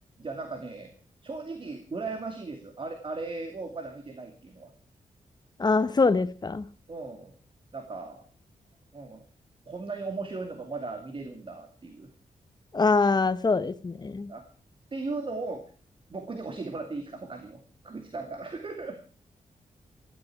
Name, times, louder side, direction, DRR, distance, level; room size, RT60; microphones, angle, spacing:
voice 1, 0.2-0.9 1.2-4.7 6.9-7.3 7.7-8.3 8.9-9.2 9.7-12.1 14.3-14.4 14.9-15.6 16.1-19.0, right 3 dB, 40° right, 2.4 m, -37 dB
voice 2, 5.6-6.7 12.7-14.3, left 4 dB, 30° left, 1.0 m, -24 dB
16.0 x 14.5 x 4.6 m
wide cardioid pair, 110°, 14 cm